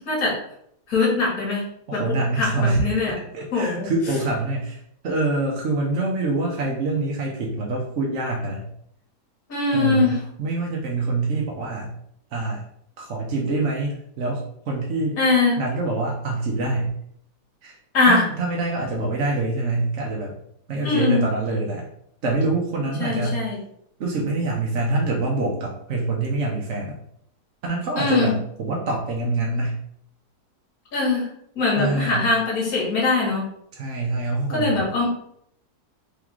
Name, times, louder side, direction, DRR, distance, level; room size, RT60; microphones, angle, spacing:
voice 1, 0.9-1.6 1.9-3.1 3.5-3.9 9.5-10.2 15.2-15.6 17.9-18.2 20.8-21.2 23.0-23.6 28.0-28.3 30.9-31.3 31.6-33.5 34.5-35.1, left 3 dB, 65° left, -4 dB, 2.0 m, -21 dB
voice 2, 1.9-2.8 3.1-8.7 9.7-12.0 12.3-12.6 13.0-15.2 15.6-17.0 17.6-17.8 18.1-20.4 20.7-21.9 22.2-23.5 24.0-27.0 27.6-29.8 31.8-32.3 33.7-34.9, right 2 dB, 55° right, -1 dB, 0.9 m, -25 dB
3.9 x 3.2 x 3.6 m, 0.70 s
omnidirectional pair, 1.7 m